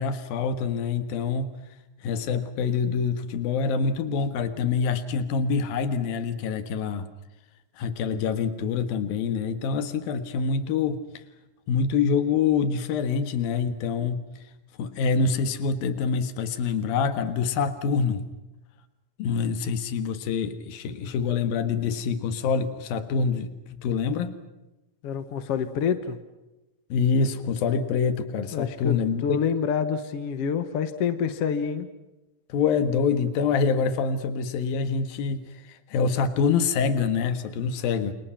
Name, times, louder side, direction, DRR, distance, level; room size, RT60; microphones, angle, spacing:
voice 1, 0.0-1.5 2.0-7.1 7.8-11.0 11.7-14.2 14.8-18.3 19.2-23.5 23.8-24.3 26.9-29.4 32.5-35.4 35.7-38.1, left 5 dB, 75° left, 10 dB, 3.4 m, -25 dB
voice 2, 25.0-26.2 28.5-31.9, left 7 dB, 55° left, 10 dB, 1.9 m, -27 dB
29.5 x 29.0 x 5.9 m, 1.0 s
omnidirectional pair, 4.2 m